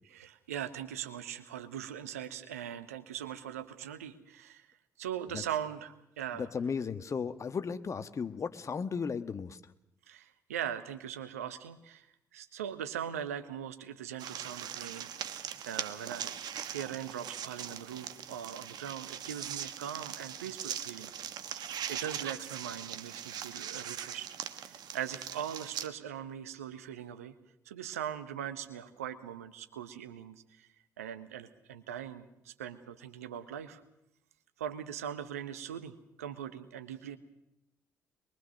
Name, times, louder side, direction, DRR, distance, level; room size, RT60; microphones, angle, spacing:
voice 1, 0.1-4.7 5.0-6.5 10.1-12.1 12.3-15.3 15.7-16.4 16.7-21.1 21.5-27.3 27.6-30.7 31.0-33.8 34.6-37.2, right 9 dB, 85° right, 10 dB, 1.2 m, -40 dB
voice 2, 6.3-9.6, left 5 dB, 40° left, 11 dB, 1.4 m, -35 dB
sound 1, 14.2-25.9, right 9 dB, 60° right, 1.4 m, -41 dB
24.0 x 22.0 x 6.5 m, 0.83 s
hypercardioid pair, 45°, 8 cm